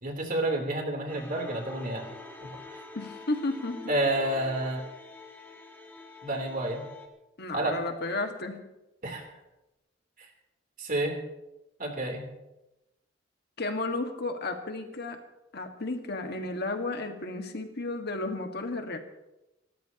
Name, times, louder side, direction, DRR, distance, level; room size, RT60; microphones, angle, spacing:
voice 1, 0.0-2.1 2.4-2.8 3.9-4.8 6.2-6.9 7.5-7.7 9.0-9.3 10.8-11.2 11.8-12.3, right 1 dB, 45° right, 1 dB, 3.5 m, -30 dB
sound 1, 1.1-7.1, left 3 dB, 10° left, 2.2 m, -46 dB
voice 2, 2.9-3.9 7.4-8.6 13.6-15.2 15.5-19.0, left 2 dB, 60° left, 4 dB, 1.7 m, -33 dB
30.0 x 14.0 x 3.0 m, 0.96 s
head